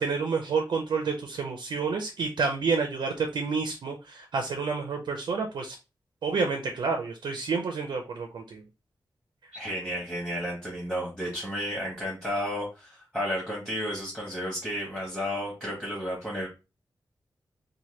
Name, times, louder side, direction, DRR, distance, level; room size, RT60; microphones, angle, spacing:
voice 1, 0.0-5.8 6.2-8.6, right 4 dB, 85° right, 4 dB, 0.5 m, -29 dB
voice 2, 9.5-16.5, equal, ahead, -4 dB, 1.0 m, -32 dB
2.8 x 2.1 x 3.1 m, 0.29 s
wide cardioid pair, 120°, 8 cm